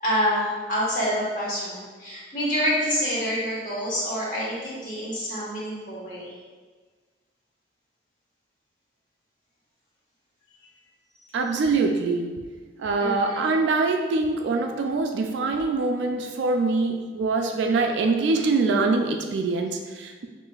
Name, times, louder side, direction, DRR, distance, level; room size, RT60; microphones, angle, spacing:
voice 1, 0.0-6.3 11.2-11.4 13.0-13.5, equal, 45° left, -7 dB, 1.2 m, -27 dB
voice 2, 11.3-12.4 12.8-20.3, right 3 dB, 70° right, 4 dB, 0.3 m, -24 dB
5.6 x 2.6 x 2.3 m, 1.4 s
head